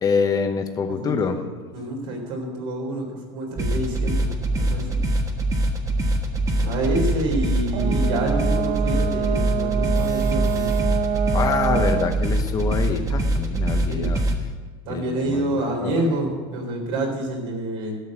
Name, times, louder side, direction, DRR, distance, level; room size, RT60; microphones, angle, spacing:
voice 1, 0.0-1.4 11.3-14.2 14.9-15.4 15.8-16.0, left 5 dB, 25° left, 6 dB, 0.9 m, -25 dB
voice 2, 0.9-1.4 1.7-5.0 6.6-10.7 13.9-14.1 14.9-18.0, right 1 dB, 80° right, 1 dB, 3.8 m, -27 dB
sound 1, 3.6-14.4, right 1 dB, 20° right, 1.3 m, -23 dB
Brass instrument, 7.7-12.2, right 8 dB, 45° right, 0.8 m, -26 dB
12.0 x 6.5 x 8.6 m, 1.4 s
supercardioid pair, 135°, 15 cm